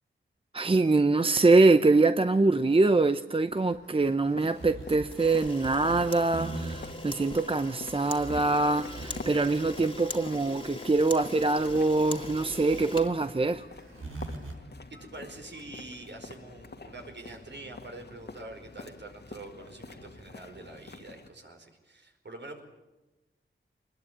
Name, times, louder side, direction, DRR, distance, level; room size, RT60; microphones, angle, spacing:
voice 1, 0.5-13.6, right 3 dB, 25° right, 10 dB, 0.7 m, -24 dB
sound 1, 3.5-14.5, right 3 dB, 75° right, 6.5 m, -42 dB
sound 2, 4.3-21.3, left 3 dB, 55° left, 2.0 m, -47 dB
Camera, 5.1-13.8, left 2 dB, 25° left, 2.3 m, -42 dB
voice 2, 14.9-22.6, right 2 dB, 60° right, 4 dB, 5.0 m, -45 dB
24.5 x 21.0 x 8.8 m, 1.1 s
wide cardioid pair, 90°, 21 cm